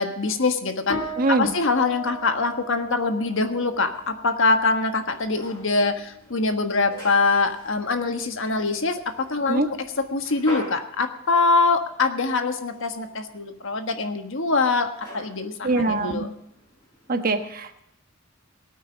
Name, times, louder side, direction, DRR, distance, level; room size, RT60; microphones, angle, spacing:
voice 1, 0.0-1.0 1.3-9.8 10.1-16.3, left 3 dB, 65° left, 7 dB, 1.4 m, -24 dB
sound 1, 0.9-10.5, equal, 80° left, 3.0 m, -40 dB
voice 2, 1.2-1.5 9.5-9.7 15.6-16.3 17.1-17.8, right 2 dB, 45° right, 7 dB, 1.2 m, -23 dB
sound 2, 3.4-17.1, left 1 dB, 20° left, 5.2 m, -45 dB
18.5 x 9.2 x 5.2 m, 0.78 s
head